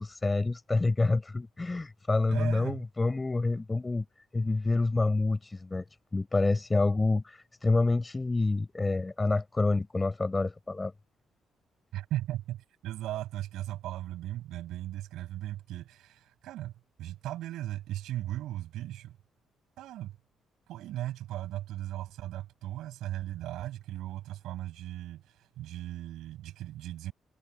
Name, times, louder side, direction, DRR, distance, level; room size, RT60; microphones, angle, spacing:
voice 1, 0.0-4.0 4.3-5.8 6.1-10.9, left 3 dB, 20° left, 6.5 m, -27 dB
voice 2, 2.3-2.8 11.9-16.7 17.0-19.2 19.8-20.1 20.7-27.1, right 14 dB, 85° right, 6.8 m, -37 dB
cardioid pair, 90°, 0 cm